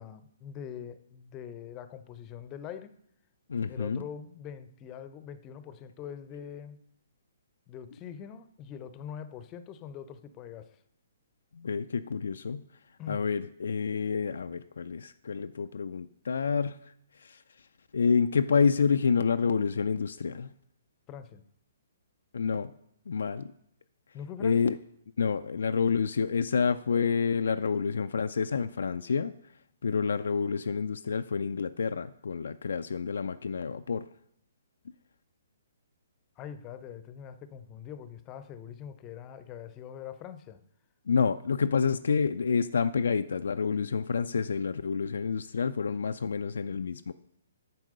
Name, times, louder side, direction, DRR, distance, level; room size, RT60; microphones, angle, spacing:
voice 1, 0.0-2.9 3.7-6.8 7.7-10.8 13.0-13.3 21.1-21.4 24.1-24.6 36.4-40.6, left 8 dB, 25° left, 12 dB, 0.6 m, -43 dB
voice 2, 3.5-4.0 11.5-12.6 13.1-16.8 17.2-17.4 17.9-20.5 22.3-22.7 23.1-23.5 24.4-24.8 25.2-29.3 29.8-34.0 41.1-47.1, left 5 dB, 65° left, 9 dB, 0.3 m, -28 dB
9.4 x 4.5 x 6.5 m, 0.73 s
figure-of-eight pair, 125°, 0 cm